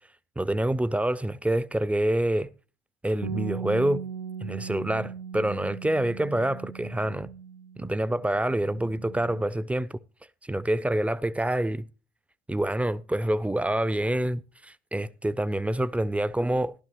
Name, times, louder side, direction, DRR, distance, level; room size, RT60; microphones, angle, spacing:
voice 1, 0.4-2.5 3.0-4.0 4.4-7.3 7.8-10.0 10.4-11.9 12.5-16.7, right 1 dB, 5° right, 0.5 m, -27 dB
Bass guitar, 3.2-9.5, right 7 dB, 80° right, 0.5 m, -39 dB
13.5 x 12.0 x 2.9 m
figure-of-eight pair, 60°, 21 cm